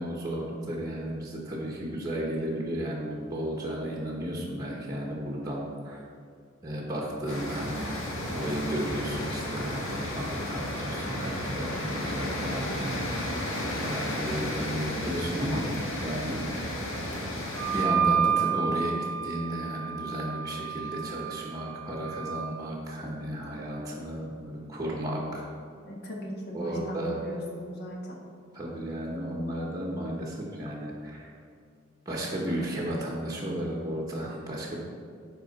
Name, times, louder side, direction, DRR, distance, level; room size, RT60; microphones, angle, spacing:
voice 1, 0.0-6.0 6.6-13.0 13.8-15.7 16.0-16.7 17.7-25.4 26.5-27.2 28.5-31.3 32.0-34.8, right 1 dB, 20° right, -3 dB, 1.0 m, -33 dB
sound 1, 7.3-17.8, left 1 dB, 75° left, 1.5 m, -33 dB
Wind instrument woodwind instrument, 17.6-22.5, right 7 dB, 70° right, 0.4 m, -30 dB
voice 2, 25.8-28.2, equal, 55° left, -1 dB, 1.3 m, -38 dB
10.5 x 4.4 x 4.1 m, 2.2 s
head